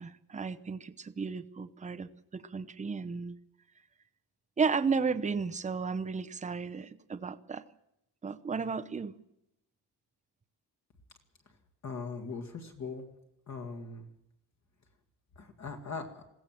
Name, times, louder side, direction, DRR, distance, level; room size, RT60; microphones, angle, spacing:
voice 1, 0.0-3.4 4.6-7.6 8.2-9.1, right 5 dB, 20° right, 12 dB, 0.7 m, -33 dB
voice 2, 11.8-13.1 13.5-14.1 15.4-16.2, left 4 dB, 40° left, 3 dB, 2.0 m, -40 dB
21.0 x 16.5 x 7.5 m, 0.81 s
wide cardioid pair, 175°, 40 cm